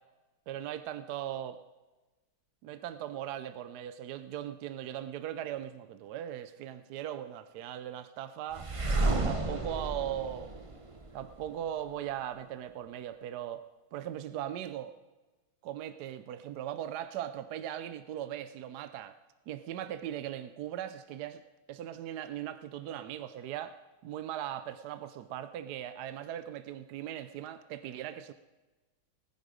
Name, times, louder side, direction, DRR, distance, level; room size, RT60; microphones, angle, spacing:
voice 1, 0.5-1.6 2.6-10.5 11.1-13.7 13.9-14.9 15.6-19.2 19.5-21.4 21.7-28.3, right 11 dB, 70° right, 11 dB, 0.9 m, -39 dB
sound 1, 8.5-11.5, right 2 dB, 50° right, 0.3 m, -31 dB
19.5 x 9.5 x 5.1 m, 1.2 s
omnidirectional pair, 2.3 m